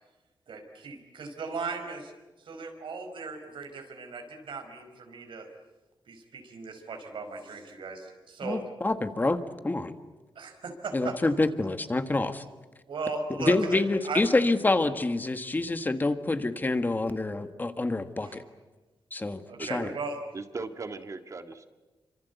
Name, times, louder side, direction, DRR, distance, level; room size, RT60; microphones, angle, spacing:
voice 1, 0.5-2.1 2.4-5.5 6.1-8.6 10.3-11.2 12.9-14.3 18.2-18.4 19.5-20.2, right 4 dB, 85° right, 4 dB, 5.0 m, -37 dB
voice 2, 8.4-9.4 9.6-10.0 10.9-12.4 13.4-18.4 19.1-19.9, left 2 dB, 20° left, 9 dB, 1.6 m, -27 dB
voice 3, 19.6-20.0 20.3-21.7, right 3 dB, 40° right, 8 dB, 1.8 m, -38 dB
28.5 x 25.5 x 8.2 m, 1.2 s
wide cardioid pair, 155°, 8 cm